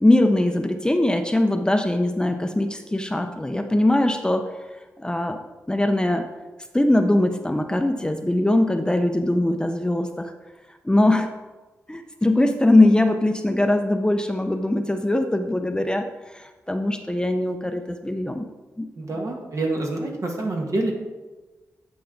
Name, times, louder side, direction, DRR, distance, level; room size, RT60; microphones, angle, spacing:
voice 1, 0.0-4.5 5.0-5.4 5.7-6.3 6.7-10.3 10.8-11.3 11.9-16.1 16.3-18.5 18.8-19.2, left 1 dB, 15° left, 6 dB, 0.6 m, -21 dB
voice 2, 19.0-20.9, right 2 dB, 55° right, 1 dB, 1.6 m, -26 dB
9.1 x 4.7 x 3.9 m, 1.2 s
supercardioid pair, 45°, 6 cm